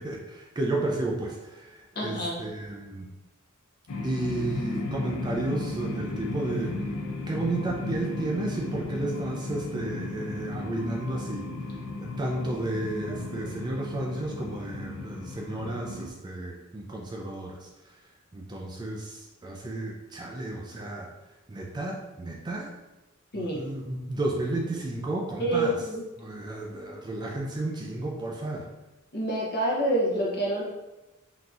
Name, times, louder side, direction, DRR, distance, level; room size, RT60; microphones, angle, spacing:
voice 1, 0.0-3.1 4.0-6.8 7.3-11.5 12.0-17.7 18.3-21.1 21.5-22.7 23.3-25.8 26.2-28.7, right 2 dB, 20° right, -1 dB, 0.3 m, -32 dB
voice 2, 2.0-2.4 13.4-13.5 23.3-23.6 25.4-26.0 29.1-30.6, right 1 dB, 50° left, -4 dB, 0.9 m, -27 dB
sound 1, 3.9-16.1, left 2 dB, 80° left, 0.5 m, -35 dB
3.8 x 2.7 x 2.4 m, 1.0 s
head